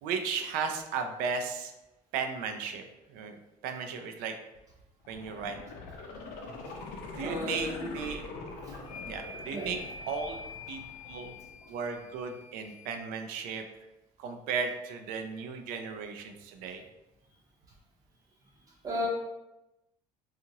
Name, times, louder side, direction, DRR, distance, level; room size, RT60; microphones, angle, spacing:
voice 1, 0.0-1.7 2.1-2.8 3.1-4.3 5.1-5.6 7.1-8.2 9.1-9.8 10.1-10.4 10.7-11.3 11.7-13.6 14.2-16.8, right 5 dB, 80° right, 5 dB, 0.4 m, -35 dB
sound 1, 5.0-12.0 12.4-12.5, left 3 dB, 85° left, 0.5 m, -43 dB
voice 2, 7.2-7.9 8.3-9.1 9.5-9.7 18.8-19.1, left 1 dB, 25° right, -3 dB, 0.6 m, -35 dB
sound 2, 8.8-13.1, left 4 dB, 50° left, 0.9 m, -47 dB
2.8 x 2.4 x 2.7 m, 0.97 s
cardioid pair, 175°, 15 cm